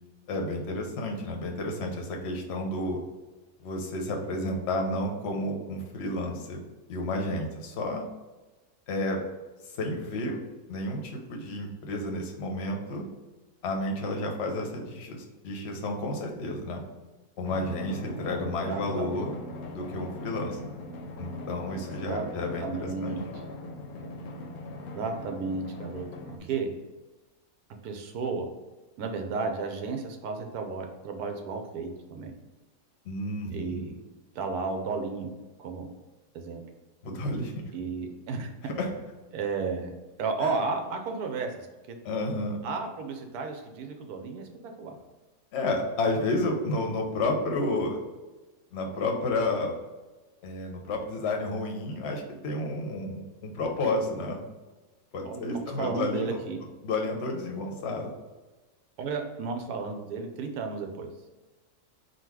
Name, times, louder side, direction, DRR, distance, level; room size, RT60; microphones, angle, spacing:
voice 1, 0.3-3.0 3.6-6.6 6.9-8.0 8.9-9.2 9.6-10.4 10.7-13.1 13.6-16.8 17.4-19.3 19.7-20.6 21.2-23.2 33.0-33.9 37.0-37.5 38.6-38.9 40.4-40.5 42.0-42.6 45.5-48.0 48.7-49.8 50.4-54.5 55.1-56.4 56.8-58.1, left 2 dB, 55° left, 2 dB, 0.9 m, -31 dB
Drum, 17.4-26.4, left 1 dB, 75° left, 1.1 m, -40 dB
voice 2, 18.6-19.2 21.7-22.2 22.6-23.2 24.9-26.7 27.8-28.5 29.0-32.4 33.5-34.0 34.3-35.3 35.6-35.9 36.3-36.6 37.7-38.5 39.3-39.9 40.2-42.0 42.6-45.0 55.2-56.6 59.0-61.1, right 4 dB, 75° right, 4 dB, 1.1 m, -33 dB
3.8 x 2.3 x 4.6 m, 1.2 s
omnidirectional pair, 1.7 m